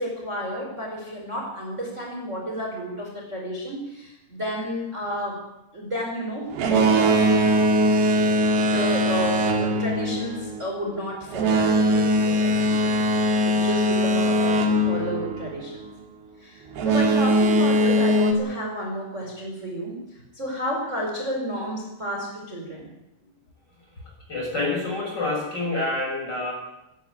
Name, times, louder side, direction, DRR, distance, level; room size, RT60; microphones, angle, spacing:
voice 1, 0.0-5.4 5.7-7.2 8.3-12.9 13.4-15.8 16.4-22.9, equal, 15° right, 0 dB, 4.8 m, -31 dB
Boat Water vehicle, 6.5-15.9 16.7-18.3, equal, 65° right, 4.3 m, -21 dB
voice 2, 24.3-26.5, left 2 dB, 25° left, 0 dB, 6.4 m, -27 dB
20.5 x 16.5 x 9.3 m, 0.91 s
omnidirectional pair, 5.0 m